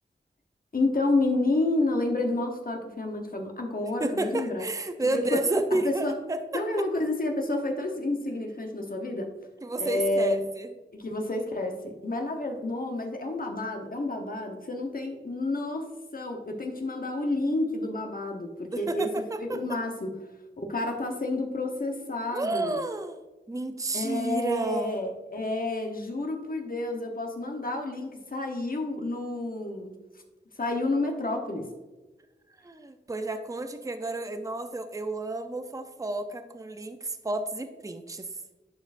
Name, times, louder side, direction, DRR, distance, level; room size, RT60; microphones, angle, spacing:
voice 1, 0.7-4.7 5.0-6.2 6.5-9.3 9.8-10.5 10.9-20.2 20.6-22.8 23.9-30.0 30.6-31.7, left 2 dB, 45° left, 3 dB, 1.0 m, -30 dB
voice 2, 4.0-6.6 9.6-10.7 18.7-19.8 22.3-23.2 23.5-25.0 32.6-38.3, right 2 dB, 15° right, 7 dB, 0.6 m, -31 dB
10.5 x 4.7 x 2.6 m, 1.2 s
cardioid pair, 45°, 20 cm